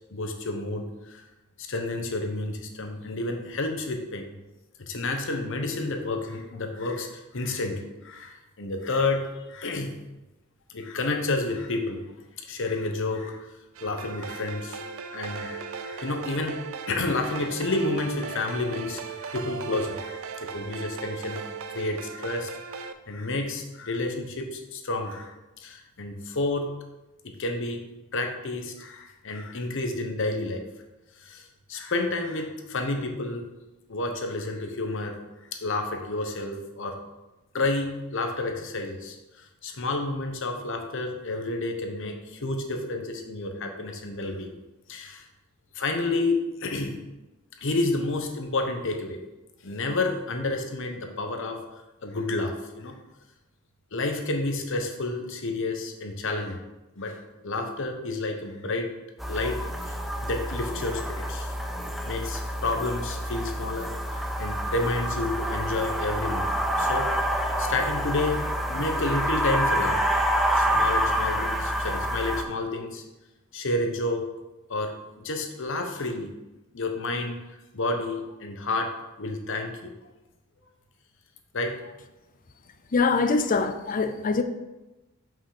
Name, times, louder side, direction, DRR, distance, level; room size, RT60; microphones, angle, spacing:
voice 1, 0.1-1.2 1.7-4.3 4.8-9.9 10.7-12.0 12.4-13.5 13.8-14.8 15.1-16.6 16.9-22.5 22.8-26.7 27.4-27.8 28.1-30.6 31.2-33.4 33.9-35.2 35.6-37.0 37.5-39.2 39.6-44.5 44.9-45.3 45.7-47.0 47.6-49.2 49.6-51.6 52.0-53.0 53.9-56.6 57.0-57.2 57.4-58.9 59.3-59.6 59.8-61.5 62.1-67.1 67.6-70.0 70.5-73.0 73.5-74.2 74.7-76.3 76.7-77.3 77.7-79.9 81.5-81.9, left 2 dB, 65° left, 4 dB, 1.0 m, -30 dB
sound 1, 13.8-22.9, right 6 dB, 70° right, 0.5 m, -37 dB
sound 2, 59.2-72.4, equal, ahead, 0.6 m, -27 dB
voice 2, 82.9-84.4, left 4 dB, 40° left, 10 dB, 0.5 m, -23 dB
5.8 x 5.5 x 4.9 m, 1.0 s
head